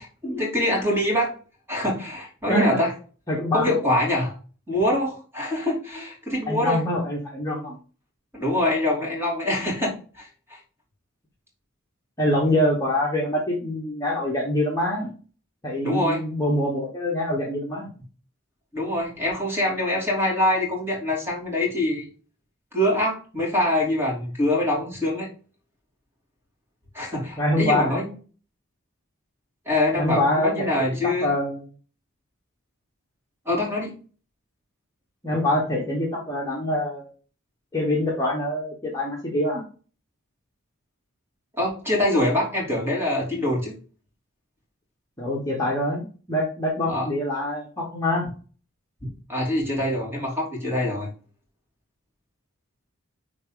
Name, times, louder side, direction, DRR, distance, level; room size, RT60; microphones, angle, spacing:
voice 1, 0.0-1.3 1.7-2.9 3.5-4.3 4.7-6.8 8.3-10.6 15.8-16.2 18.7-22.1 22.7-25.3 26.9-28.1 29.6-31.3 33.4-33.9 41.6-43.7 46.9-47.1 49.3-51.1, left 1 dB, 10° right, -2 dB, 3.0 m, -24 dB
voice 2, 2.5-2.8 3.3-3.8 6.5-7.8 12.2-15.1 15.6-17.9 27.4-28.0 30.0-31.6 35.2-37.1 37.7-39.6 45.2-48.3, left 1 dB, 15° left, -3 dB, 1.4 m, -25 dB
10.0 x 3.7 x 4.0 m, 0.39 s
head